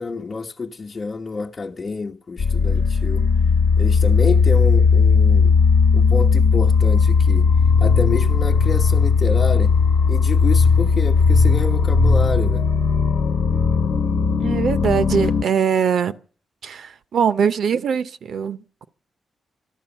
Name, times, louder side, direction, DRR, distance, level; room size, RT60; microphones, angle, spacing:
voice 1, 0.0-3.3 3.8-5.6 5.9-7.5 7.8-9.8 10.1-12.7, left 4 dB, 35° left, 1.0 m, -28 dB
sound 1, 2.4-15.4, left 5 dB, 80° left, 1.1 m, -17 dB
voice 2, 14.4-16.2 16.6-18.9, right 7 dB, 75° right, 0.8 m, -22 dB
14.5 x 12.0 x 7.2 m
cardioid pair, 90°, 0 cm